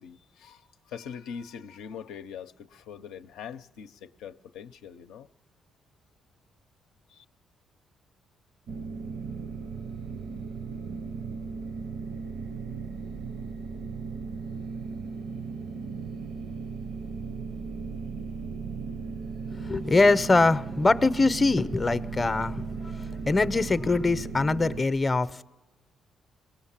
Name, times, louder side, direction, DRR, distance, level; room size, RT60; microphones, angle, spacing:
voice 1, 0.0-5.3 7.1-7.3, left 7 dB, 90° left, 0.6 m, -42 dB
sound 1, 8.7-24.8, right 5 dB, 75° right, 0.6 m, -36 dB
voice 2, 19.5-25.4, left 3 dB, 25° left, 0.6 m, -23 dB
21.5 x 18.5 x 7.3 m
cardioid pair, 90°, 0 cm